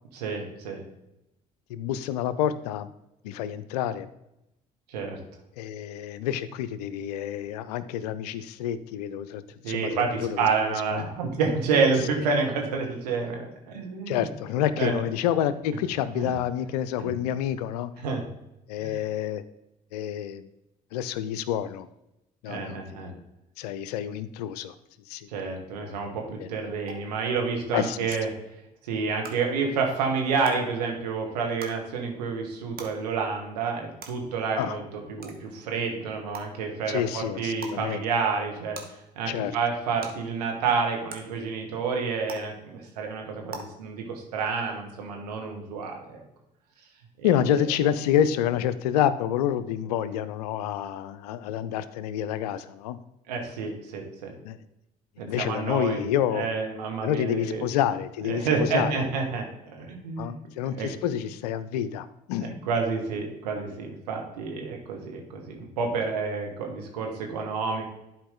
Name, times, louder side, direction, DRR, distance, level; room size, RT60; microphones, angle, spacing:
voice 1, 0.1-0.8 4.9-5.2 9.6-14.3 14.8-15.0 16.1-16.3 17.0-17.2 18.0-18.2 18.8-18.9 22.4-23.1 25.3-28.3 28.8-38.8 39.1-46.2 47.2-47.3 53.3-54.3 55.2-56.0 56.3-57.6 58.2-60.3 60.7-60.9 62.4-67.8, right 5 dB, 80° right, 1 dB, 1.4 m, -29 dB
voice 2, 1.7-2.9 3.2-4.1 5.6-11.0 14.1-17.9 18.7-19.4 19.9-20.5 20.9-21.9 22.4-23.1 23.6-24.7 25.1-25.3 26.4-26.5 27.7-28.2 34.6-34.8 36.9-38.0 39.3-39.6 47.2-53.0 54.4-54.6 55.2-56.5 57.0-59.1 60.2-62.5, left 10 dB, 75° left, 15 dB, 0.5 m, -28 dB
sound 1, 26.9-27.0 28.1-28.2 29.2-29.3 30.4-30.5 31.6-31.7 32.8-32.9 34.0-34.1 35.2-35.3 36.3-36.4 37.6-37.8 38.7-38.8 40.0-40.1 41.1-41.2 42.3-42.4 43.5-43.6, right 5 dB, 45° right, 1.4 m, -39 dB
11.5 x 4.6 x 3.7 m, 0.88 s
hypercardioid pair, 55°, 20 cm